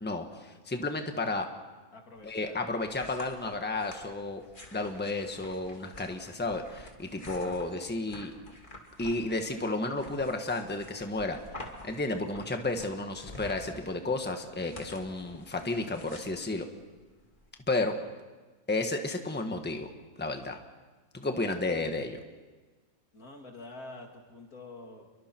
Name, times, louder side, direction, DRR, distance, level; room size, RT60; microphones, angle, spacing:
voice 1, 0.0-1.5 2.2-4.4 4.7-8.3 9.0-11.4 11.8-16.6 17.7-17.9 18.7-19.9 20.2-20.6 21.1-22.2, left 2 dB, 5° left, 5 dB, 1.4 m, -32 dB
voice 2, 1.9-2.6 23.1-25.1, left 2 dB, 80° left, 2 dB, 3.0 m, -47 dB
sound 1, 2.2-17.5, left 1 dB, 35° left, 2.7 m, -49 dB
30.0 x 23.0 x 4.5 m, 1.3 s
omnidirectional pair, 1.5 m